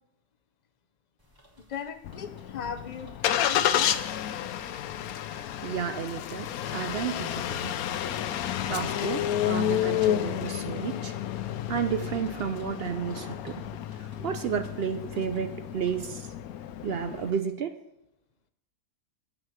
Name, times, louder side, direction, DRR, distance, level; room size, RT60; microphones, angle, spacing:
sound 1, 1.2-16.2, left 1 dB, 15° right, 1.6 m, -57 dB
voice 1, 1.6-4.2, left 7 dB, 50° left, 10 dB, 0.5 m, -38 dB
Engine starting, 2.0-17.3, left 11 dB, 85° left, 1.1 m, -31 dB
voice 2, 5.3-7.7 8.7-11.1 11.7-13.6 13.9-16.3 16.8-17.8, right 7 dB, 60° right, 9 dB, 0.6 m, -32 dB
7.7 x 6.2 x 7.2 m, 0.85 s
omnidirectional pair, 1.5 m